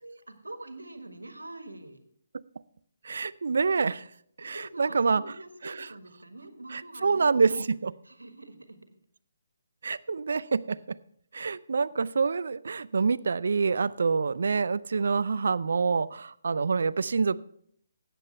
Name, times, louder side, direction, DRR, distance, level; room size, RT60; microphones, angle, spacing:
voice 1, 0.0-2.0 4.4-7.7 8.0-8.8 9.8-10.0, right 2 dB, 90° right, 8 dB, 1.6 m, -45 dB
voice 2, 3.0-4.0 4.4-5.2 5.6-5.7 6.7-7.9 9.8-11.0 11.3-17.4, right 4 dB, 65° right, 19 dB, 0.4 m, -26 dB
14.0 x 9.2 x 3.3 m, 0.65 s
figure-of-eight pair, 145°, 0 cm